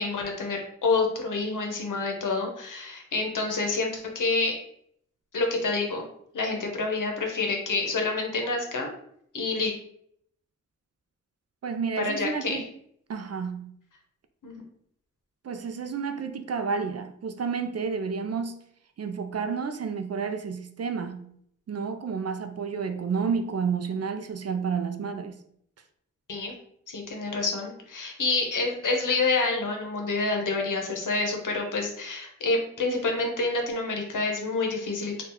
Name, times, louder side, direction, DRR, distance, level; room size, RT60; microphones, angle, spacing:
voice 1, 0.0-4.6 5.3-6.0 6.3-8.9 9.3-9.7 12.0-12.7 14.4-14.6 26.3-26.5 26.9-35.2, left 3 dB, 75° left, 0.8 m, -28 dB
voice 2, 11.6-12.7 13.1-13.7 15.4-18.6 19.0-21.3 21.7-25.4, right 5 dB, 55° right, 0.4 m, -30 dB
2.8 x 2.3 x 3.7 m
cardioid pair, 45°, 31 cm